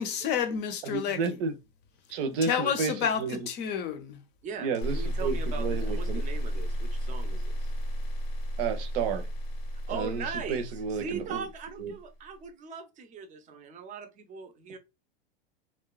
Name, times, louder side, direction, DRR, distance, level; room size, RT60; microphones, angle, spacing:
voice 1, 0.0-1.2 2.4-4.2, left 7 dB, 35° left, 0.6 m, -30 dB
voice 2, 0.8-1.6 2.1-3.5 4.6-6.2 8.6-9.3 9.9-11.5 11.8-11.9, right 5 dB, 65° right, 0.7 m, -31 dB
voice 3, 4.4-7.7 8.0-8.1 9.9-10.7 11.0-14.8, right 5 dB, 25° right, 0.6 m, -40 dB
sound 1, 4.8-11.9, equal, 75° left, 0.7 m, -33 dB
2.8 x 2.2 x 2.2 m
hypercardioid pair, 120°, 29 cm